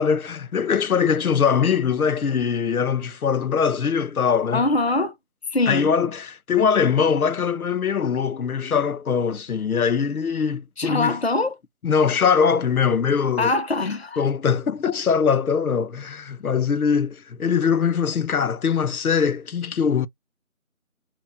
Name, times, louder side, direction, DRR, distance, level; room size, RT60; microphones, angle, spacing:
voice 1, 0.0-4.6 5.7-11.2 11.8-13.5 14.2-20.1, left 6 dB, 85° left, 0.7 m, -22 dB
voice 2, 4.5-5.1 5.5-5.9 10.8-11.6 13.4-14.3, left 2 dB, 50° left, 0.6 m, -23 dB
7.3 x 2.9 x 2.5 m
figure-of-eight pair, 175°, 42 cm